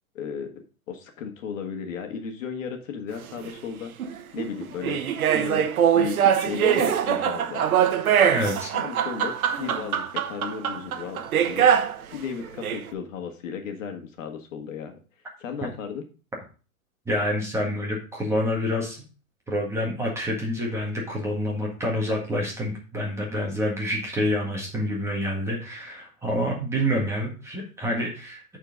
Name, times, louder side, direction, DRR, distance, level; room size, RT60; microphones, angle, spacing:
voice 1, 0.2-0.5 0.9-3.9 4.3-5.7 5.9-7.7 8.7-10.0 10.3-11.7 12.1-15.0 15.4-16.0, left 6 dB, 60° left, 5 dB, 1.7 m, -35 dB
sound 1, 3.2-3.3 4.0-12.0 12.5-12.8, right 9 dB, 80° right, 1.1 m, -23 dB
voice 2, 8.3-8.7 17.1-19.0 19.5-28.6, equal, 5° right, -2 dB, 1.7 m, -27 dB
8.6 x 4.5 x 5.1 m, 0.37 s
hypercardioid pair, 155°, 42 cm